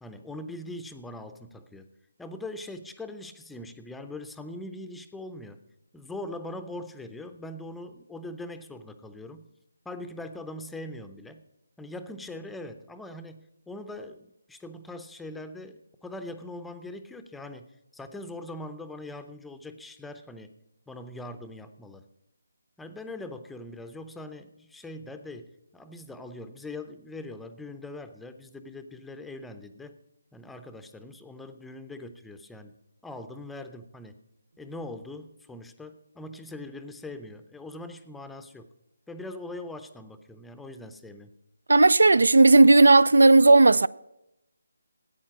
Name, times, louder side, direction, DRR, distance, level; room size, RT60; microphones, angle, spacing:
voice 1, 0.0-1.9 2.2-5.6 5.9-9.4 9.8-11.4 11.8-20.5 20.9-22.1 22.8-30.0 30.3-32.7 33.0-34.2 34.6-38.7 39.1-41.3, left 2 dB, 5° left, 0.6 m, -41 dB
voice 2, 41.7-43.9, right 2 dB, 75° right, 0.4 m, -15 dB
14.0 x 8.7 x 6.1 m
figure-of-eight pair, 155°, 0 cm